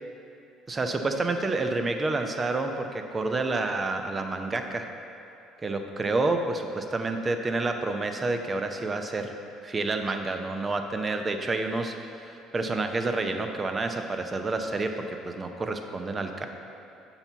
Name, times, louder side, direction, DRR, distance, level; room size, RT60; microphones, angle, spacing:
voice 1, 0.7-4.9 5.6-9.3 9.6-16.5, right 3 dB, 30° right, 6 dB, 0.6 m, -29 dB
7.0 x 5.7 x 4.0 m, 2.9 s
hypercardioid pair, 70°, 0 cm